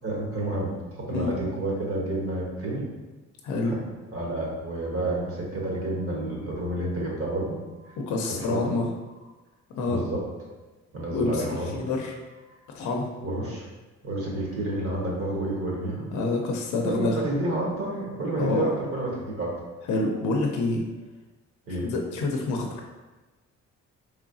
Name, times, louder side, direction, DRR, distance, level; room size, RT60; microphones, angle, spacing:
voice 1, 0.0-2.9 3.7-3.8 4.1-8.0 8.4-8.7 9.9-10.2 10.9-11.9 13.2-13.7 14.0-16.1 16.8-19.5 21.7-21.9, right 1 dB, 50° right, -3 dB, 1.2 m, -30 dB
voice 2, 3.4-3.7 8.0-8.9 9.7-10.0 11.1-11.5 11.7-12.1 12.7-13.1 16.1-17.2 18.4-18.7 19.9-20.9 21.8-22.8, left 2 dB, 75° left, 1 dB, 0.6 m, -27 dB
3.7 x 3.1 x 2.6 m, 1.2 s
cardioid pair, 90°, 30 cm